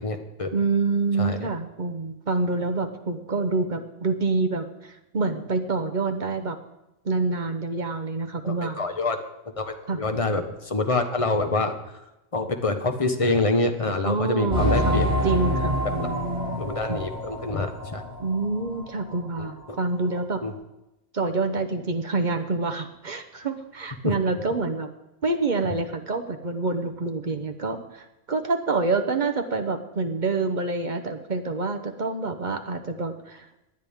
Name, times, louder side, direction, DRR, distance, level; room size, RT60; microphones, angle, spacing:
voice 1, 0.0-0.5 1.2-1.5 8.4-9.2 9.6-11.7 12.3-15.1 16.0-16.1 16.6-18.0 19.4-19.5 20.4-20.5 24.0-24.1, left 2 dB, 30° left, 5 dB, 1.1 m, -26 dB
voice 2, 0.5-6.6 7.0-8.8 9.9-10.0 14.0-17.0 18.2-20.4 21.1-24.9 25.2-33.5, right 3 dB, 40° right, 7 dB, 0.9 m, -27 dB
sound 1, 14.5-18.8 19.1-19.2 19.8-19.9, equal, 5° right, 6.0 m, -27 dB
18.0 x 10.5 x 3.6 m, 0.93 s
omnidirectional pair, 1.3 m